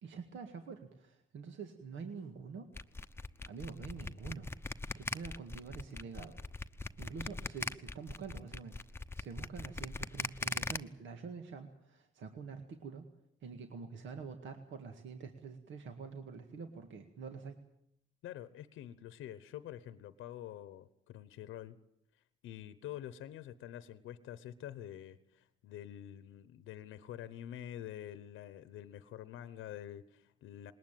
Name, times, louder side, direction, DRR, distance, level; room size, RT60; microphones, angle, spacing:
voice 1, 0.0-2.7 3.4-4.5 5.0-6.4 7.0-8.8 9.2-13.1 13.4-17.6, right 5 dB, 70° right, 5 dB, 2.0 m, -46 dB
sound 1, 2.8-10.8, left 2 dB, 10° left, 0.9 m, -40 dB
voice 2, 18.2-21.8 22.1-30.7, left 11 dB, 85° left, 14 dB, 1.0 m, -47 dB
20.5 x 19.0 x 9.1 m, 0.76 s
cardioid pair, 90°, 20 cm